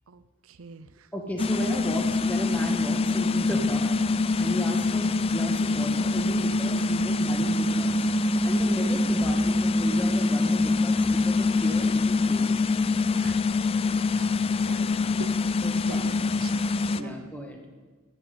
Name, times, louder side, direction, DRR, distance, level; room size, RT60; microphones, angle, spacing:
voice 1, 0.1-1.1 9.2-9.5 13.2-14.3 14.7-17.3, right 4 dB, 70° right, 12 dB, 0.6 m, -45 dB
voice 2, 1.1-8.0 8.4-12.7 15.6-16.1 17.0-17.6, equal, 5° left, 2 dB, 1.6 m, -35 dB
sound 1, 1.4-17.0, left 3 dB, 25° left, 0.3 m, -24 dB
12.0 x 8.0 x 8.2 m, 1.3 s
head